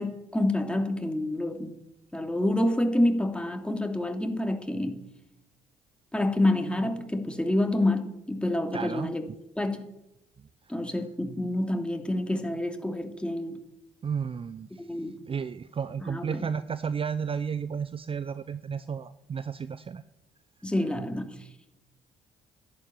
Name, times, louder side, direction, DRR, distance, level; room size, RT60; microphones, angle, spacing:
voice 1, 0.0-1.7 2.1-5.0 6.1-9.2 9.6-9.9 10.7-13.6 14.8-15.1 16.1-16.4 20.6-21.4, left 1 dB, 5° left, 4 dB, 2.7 m, -28 dB
voice 2, 8.7-9.4 14.0-14.9 15.3-20.0, right 6 dB, 35° right, 14 dB, 0.6 m, -33 dB
12.5 x 11.0 x 9.0 m, 0.87 s
hypercardioid pair, 50°, 16 cm